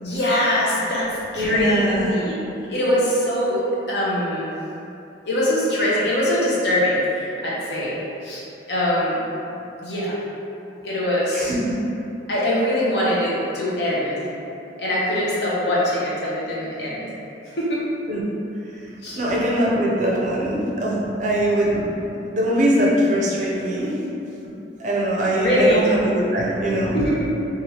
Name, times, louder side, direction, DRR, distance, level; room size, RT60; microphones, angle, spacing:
voice 1, 0.0-2.3 2.7-4.5 5.2-8.4 8.7-9.2 9.8-10.2 10.8-11.5 12.3-14.3 14.8-17.1 17.5-17.8 19.0-19.2 25.4-25.8 26.9-27.3, left 1 dB, 65° left, -7 dB, 0.7 m, -22 dB
voice 2, 1.4-2.1 11.3-11.7 18.1-18.2 18.7-21.9 22.3-24.0 24.4-24.5 24.8-27.1, right 1 dB, 40° right, -4 dB, 0.5 m, -22 dB
3.2 x 2.4 x 2.8 m, 2.8 s
head